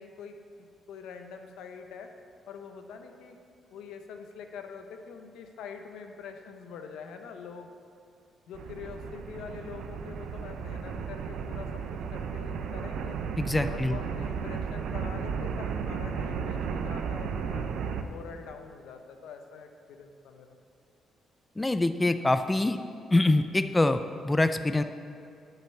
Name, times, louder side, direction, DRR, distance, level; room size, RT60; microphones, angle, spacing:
voice 1, 0.0-2.1 2.5-3.4 3.7-7.7 8.5-13.2 13.7-17.6 18.1-20.5, left 6 dB, 85° left, 5 dB, 0.8 m, -44 dB
sound 1, 8.5-18.0, right 6 dB, 75° right, 0.6 m, -34 dB
voice 2, 13.4-14.0 21.6-22.8 23.1-24.8, left 2 dB, 15° left, 10 dB, 0.4 m, -25 dB
8.9 x 5.9 x 7.0 m, 2.5 s
cardioid pair, 90°, 0 cm